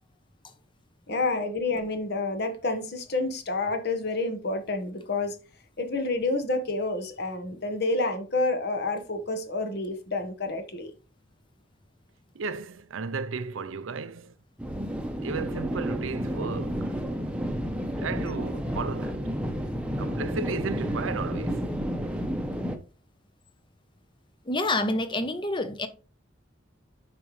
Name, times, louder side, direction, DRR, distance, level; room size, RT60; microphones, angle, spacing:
voice 1, 1.1-5.4 5.8-10.9, left 2 dB, 55° left, 1.2 m, -29 dB
voice 2, 12.3-14.3 15.2-16.9 18.0-19.3 20.0-21.7, right 4 dB, 85° right, 0.6 m, -34 dB
sound 1, 14.6-22.8, equal, 5° right, 0.8 m, -31 dB
voice 3, 24.5-25.9, left 2 dB, 25° left, 0.8 m, -27 dB
8.8 x 5.2 x 3.1 m
head